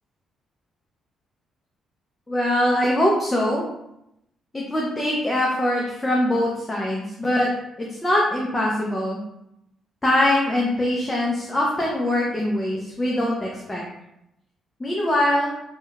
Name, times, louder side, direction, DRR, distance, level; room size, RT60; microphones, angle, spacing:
voice 1, 2.3-3.6 4.5-7.5 7.8-9.2 10.0-13.8 14.8-15.5, left 1 dB, 20° left, -3 dB, 0.5 m, -22 dB
2.8 x 2.1 x 2.3 m, 0.82 s
cardioid pair, 90°, 0 cm